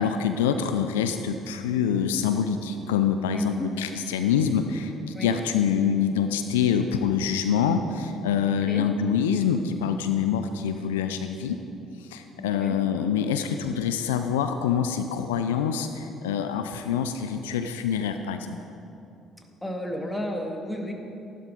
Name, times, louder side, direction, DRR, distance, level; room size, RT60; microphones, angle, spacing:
voice 1, 0.0-11.6 12.0-18.6, left 7 dB, 80° left, 8 dB, 0.5 m, -25 dB
voice 2, 3.3-3.7 5.1-5.4 8.7-8.8 12.4-12.8 19.6-20.9, equal, 10° left, 2 dB, 2.2 m, -32 dB
15.5 x 11.5 x 3.9 m, 2.7 s
hypercardioid pair, 50°, 0 cm